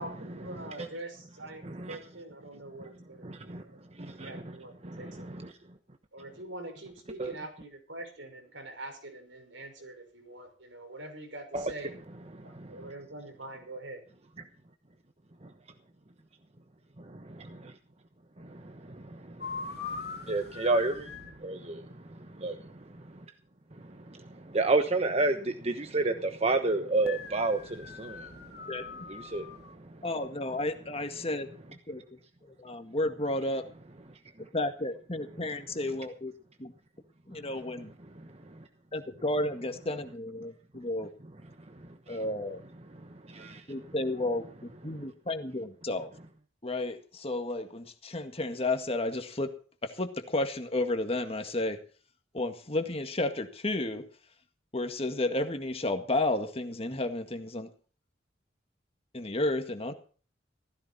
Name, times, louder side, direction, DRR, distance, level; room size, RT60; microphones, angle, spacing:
voice 1, 0.0-3.8 4.2-5.3 6.1-11.9 12.4-14.0, right 1 dB, 80° right, 5.9 m, -44 dB
voice 2, 1.6-2.0 3.2-3.6 4.0-4.5 4.8-5.5 7.2-7.3 11.5-11.7 12.4-12.8 17.0-17.7 18.4-21.1 21.4-22.8 24.1-28.6 29.1-29.5 41.8-42.2 43.3-43.6, right 2 dB, 35° right, 1.1 m, -31 dB
sound 1, 19.4-21.4 27.0-29.7, left 5 dB, 55° left, 2.7 m, -42 dB
voice 3, 30.0-31.5 31.9-33.6 34.5-36.3 36.6-36.7 37.3-37.9 38.9-41.1 42.1-42.6 43.7-46.1 46.6-49.5 49.8-51.8 52.3-54.1 54.7-57.7 59.1-59.9, left 2 dB, 30° left, 1.9 m, -32 dB
16.0 x 15.0 x 4.3 m
head